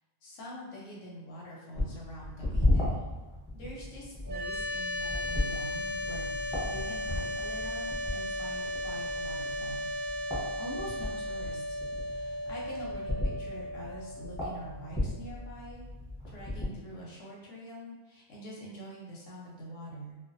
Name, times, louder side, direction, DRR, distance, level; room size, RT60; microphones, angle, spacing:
voice 1, 0.2-3.0 3.5-10.2 10.6-15.9 16.3-20.2, right 1 dB, 90° left, -4 dB, 1.0 m, -45 dB
sound 1, 1.7-16.7, left 1 dB, 5° right, 0.6 m, -35 dB
sound 2, 4.3-15.4, left 1 dB, 55° right, 0.7 m, -36 dB
2.4 x 2.1 x 2.5 m, 1.1 s
omnidirectional pair, 1.3 m